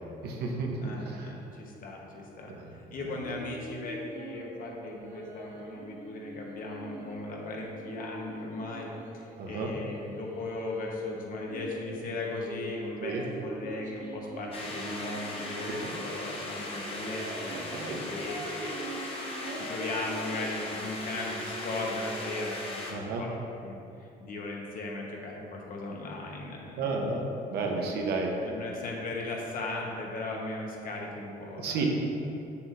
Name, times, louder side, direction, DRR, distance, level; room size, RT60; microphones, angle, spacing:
voice 1, 0.2-0.8 1.1-1.3 2.5-3.0 9.4-9.7 13.0-13.2 15.7-15.9 17.5-18.0 22.9-23.2 26.8-28.3 31.6-31.9, right 4 dB, 75° right, 1 dB, 1.0 m, -32 dB
voice 2, 0.8-8.9 9.1-13.1 13.4-19.0 19.5-23.3 23.6-26.8 27.7-27.9 28.4-31.9, left 2 dB, 55° left, -1 dB, 1.2 m, -37 dB
sound 1, 3.2-11.0 11.5-16.4 16.7-16.8 17.0-20.3, right 1 dB, 50° right, 1.1 m, -44 dB
sound 2, 14.5-22.9, left 1 dB, 35° left, 1.0 m, -38 dB
7.0 x 6.9 x 2.7 m, 2.8 s
cardioid pair, 110°, 17 cm